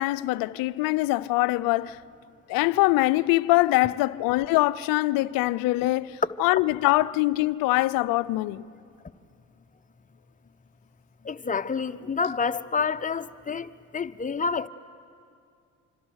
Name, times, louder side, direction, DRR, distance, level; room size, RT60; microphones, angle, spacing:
voice 1, 0.0-2.0 2.5-8.6, left 19 dB, 70° left, 0.7 m, -23 dB
voice 2, 11.2-14.7, left 5 dB, 20° left, 1.0 m, -28 dB
26.0 x 26.0 x 6.5 m
hypercardioid pair, 60°, 36 cm